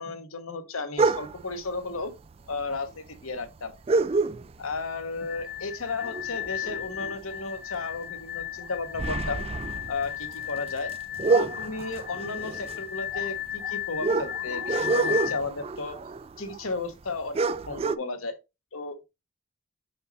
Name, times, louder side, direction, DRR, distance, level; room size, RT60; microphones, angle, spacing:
voice 1, 0.0-2.1 2.5-3.7 4.6-9.4 9.9-10.9 11.3-16.0 16.4-18.3 18.7-19.1, left 3 dB, 85° left, 1.1 m, -34 dB
sound 1, 1.0-1.5 2.5-2.6 2.9-3.0 3.9-4.8 5.2-5.4 5.8-7.4 7.7-7.9 8.4-16.8 17.1-17.2 17.3-18.0, right 3 dB, 30° right, 0.3 m, -28 dB
sound 2, 5.2-15.4, left 12 dB, 50° left, 0.5 m, -35 dB
5.7 x 5.3 x 4.0 m
head